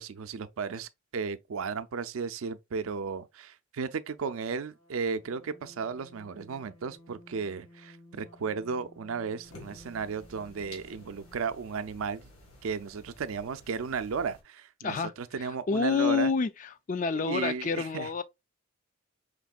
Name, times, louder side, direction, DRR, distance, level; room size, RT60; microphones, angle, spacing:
voice 1, 0.0-12.3 12.6-16.3 17.1-18.1, right 5 dB, 70° right, 0.4 m, -34 dB
sound 1, 4.7-11.5, left 1 dB, 70° left, 1.8 m, -55 dB
sound 2, 9.4-14.4, left 1 dB, 85° left, 1.8 m, -53 dB
voice 2, 15.4-18.2, left 5 dB, 35° left, 0.3 m, -28 dB
5.1 x 3.6 x 2.3 m
head